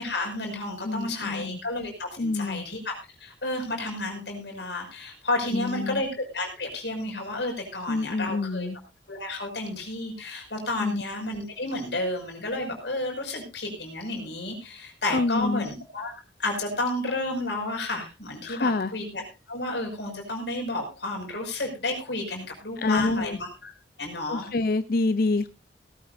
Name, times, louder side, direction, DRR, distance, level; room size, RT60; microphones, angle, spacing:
voice 1, 0.0-2.9 3.2-8.7 9.1-19.2 19.5-23.7 24.0-24.4, left 2 dB, 70° left, 2 dB, 5.7 m, -31 dB
voice 2, 0.8-1.6 2.2-2.6 5.5-6.0 7.9-8.8 10.8-11.0 15.1-15.7 18.4-18.9 22.8-23.4 24.3-25.5, left 3 dB, 55° left, 12 dB, 0.6 m, -27 dB
18.5 x 13.0 x 2.6 m, 0.30 s
head